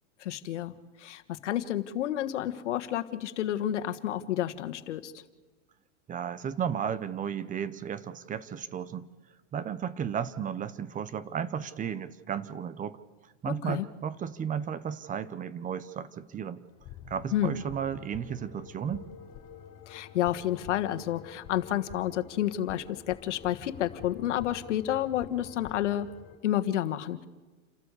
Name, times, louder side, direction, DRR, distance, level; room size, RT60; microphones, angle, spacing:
voice 1, 0.2-0.7 1.0-5.1 13.5-13.9 17.3-17.6 19.9-26.1 26.4-27.3, left 12 dB, 85° left, 10 dB, 1.5 m, -30 dB
voice 2, 6.1-9.1 9.5-13.0 13.2-16.6 17.1-19.1, right 8 dB, 20° right, 16 dB, 0.9 m, -34 dB
sound 1, 16.6-26.4, left 8 dB, 40° left, 3.9 m, -48 dB
29.0 x 13.0 x 8.3 m, 1.3 s
supercardioid pair, 130°, 35 cm